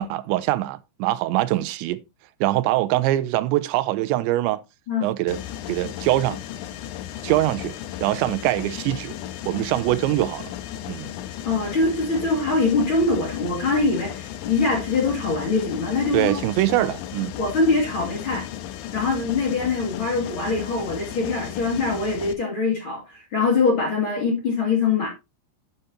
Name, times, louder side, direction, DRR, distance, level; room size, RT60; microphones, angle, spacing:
voice 1, 0.0-2.0 2.4-4.6 5.0-5.4 5.7-6.4 7.2-7.7 8.0-9.1 9.5-10.5 10.9-11.1 16.1-17.3, right 16 dB, 85° right, 2.8 m, -23 dB
Mechanisms, 5.3-22.3, left 11 dB, 85° left, 3.1 m, -35 dB
voice 2, 11.4-16.4 16.8-16.9 17.4-18.4 18.9-25.1, left 3 dB, 35° left, 2.4 m, -23 dB
9.9 x 8.2 x 2.8 m
omnidirectional pair, 5.2 m